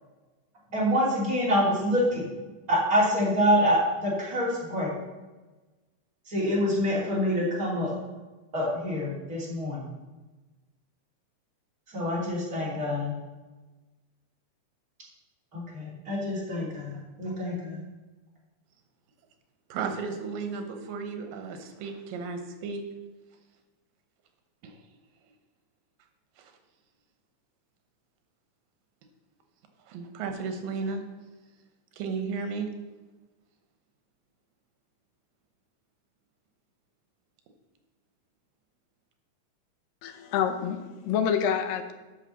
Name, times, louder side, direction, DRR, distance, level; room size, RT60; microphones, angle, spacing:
voice 1, 0.7-2.3 2.7-4.9 6.3-7.9 8.5-9.8 11.9-13.1 15.5-17.8, equal, 25° right, -6 dB, 3.0 m, -26 dB
voice 2, 19.7-22.8 24.6-24.8 26.4-26.5 29.9-31.0 32.0-32.7, right 5 dB, 90° right, 6 dB, 2.8 m, -34 dB
voice 3, 40.0-41.9, left 8 dB, 85° left, 7 dB, 2.5 m, -27 dB
8.2 x 5.8 x 7.0 m, 1.2 s
omnidirectional pair, 3.8 m